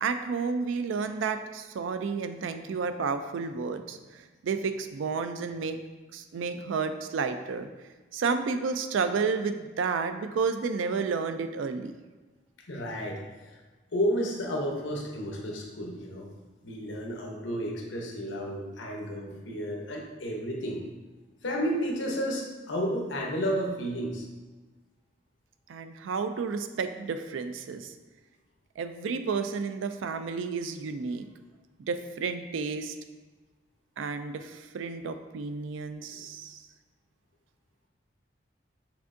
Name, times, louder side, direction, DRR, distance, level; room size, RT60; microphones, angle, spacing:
voice 1, 0.0-5.8 6.1-7.7 8.1-11.9 25.7-27.9 28.8-31.2 31.9-32.9 34.0-36.6, right 5 dB, 85° right, 9 dB, 0.3 m, -31 dB
voice 2, 12.7-13.2 13.9-16.3 16.6-20.8 21.4-24.3, equal, 75° left, 0 dB, 0.8 m, -31 dB
6.1 x 3.4 x 2.6 m, 1.3 s
head